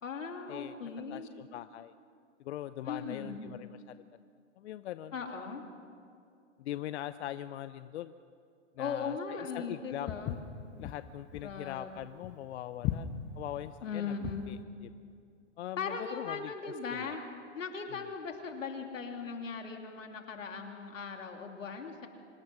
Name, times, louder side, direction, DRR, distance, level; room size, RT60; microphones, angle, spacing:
voice 1, 0.0-1.3 2.8-3.5 5.1-5.6 8.8-10.4 11.4-11.9 13.8-14.5 15.8-17.2 17.5-22.1, left 5 dB, 85° left, 3 dB, 3.0 m, -38 dB
voice 2, 1.1-1.9 2.4-4.0 4.6-5.5 6.6-8.1 8.8-10.1 10.8-14.1 14.5-14.9 15.6-17.2, left 12 dB, 60° left, 13 dB, 0.7 m, -42 dB
Walk footsteps, 10.1-14.5, left 12 dB, 30° left, 1.2 m, -38 dB
25.5 x 20.0 x 6.1 m, 2.4 s
hypercardioid pair, 125°, 38 cm